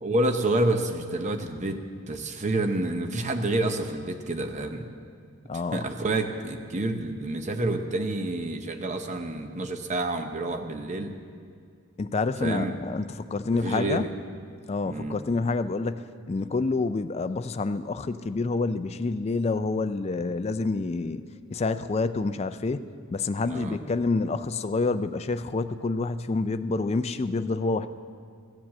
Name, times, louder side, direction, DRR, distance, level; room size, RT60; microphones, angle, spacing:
voice 1, 0.0-1.8 2.1-4.9 5.7-11.1 12.4-12.7 13.5-14.1 14.8-15.2 23.4-23.8, right 2 dB, 30° right, 6 dB, 0.7 m, -28 dB
voice 2, 5.5-5.8 12.0-14.1 14.7-21.2 21.5-27.9, left 3 dB, 30° left, 11 dB, 0.3 m, -28 dB
14.0 x 7.5 x 7.4 m, 2.2 s
head